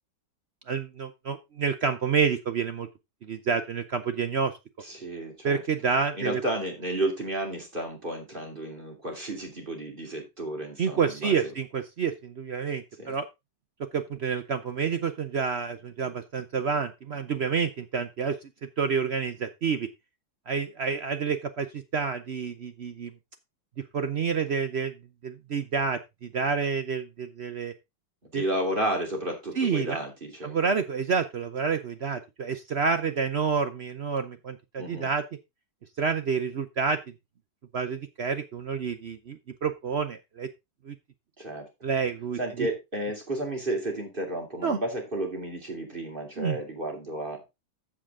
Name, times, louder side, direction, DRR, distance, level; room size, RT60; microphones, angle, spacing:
voice 1, 0.7-2.9 3.3-4.5 5.4-6.4 10.8-13.3 13.9-18.3 18.8-19.9 20.5-23.1 23.9-24.9 25.2-26.0 26.3-27.7 28.3-28.4 29.6-30.0 30.4-35.2 36.0-37.0 37.7-40.5 40.9-41.0 41.8-42.4 44.6-44.8 46.4-46.6, right 6 dB, 70° right, 9 dB, 0.6 m, -28 dB
voice 2, 4.8-5.6 6.1-11.5 13.0-13.2 28.3-30.6 34.8-35.1 41.4-41.7 42.4-47.5, right 1 dB, 25° right, 2 dB, 3.0 m, -32 dB
14.5 x 5.0 x 3.6 m, 0.23 s
omnidirectional pair, 2.1 m